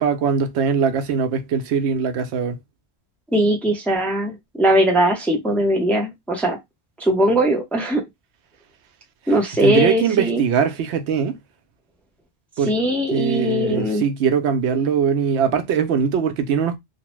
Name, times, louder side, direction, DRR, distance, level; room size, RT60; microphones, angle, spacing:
voice 1, 0.0-2.6 9.6-11.4 12.6-12.7 13.1-16.8, right 6 dB, 85° right, 0.9 m, -21 dB
voice 2, 3.3-6.6 7.0-8.0 9.3-10.4 12.7-14.0, right 1 dB, ahead, 0.5 m, -20 dB
2.8 x 2.1 x 3.0 m
omnidirectional pair, 1.1 m